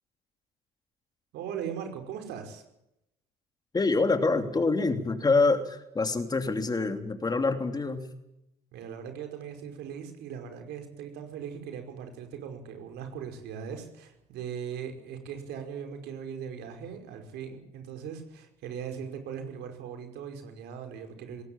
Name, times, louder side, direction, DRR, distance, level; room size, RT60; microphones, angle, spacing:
voice 1, 1.3-2.6 8.7-21.4, right 7 dB, 85° right, 6 dB, 5.3 m, -39 dB
voice 2, 3.7-8.1, left 3 dB, 25° left, 7 dB, 3.1 m, -26 dB
21.0 x 18.5 x 8.9 m, 0.84 s
cardioid pair, 110°, 17 cm